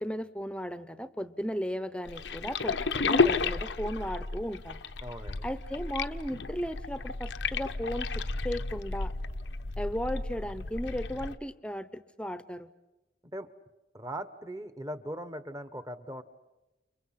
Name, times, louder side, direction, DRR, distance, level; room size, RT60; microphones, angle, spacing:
voice 1, 0.0-4.8 5.4-9.1 9.8-12.7, equal, 5° left, 13 dB, 0.8 m, -35 dB
sound 1, 2.1-11.4, left 4 dB, 80° left, 0.9 m, -32 dB
voice 2, 5.0-5.5 13.2-13.5 13.9-16.2, right 1 dB, 20° right, 11 dB, 1.1 m, -39 dB
30.0 x 30.0 x 5.9 m, 1.0 s
head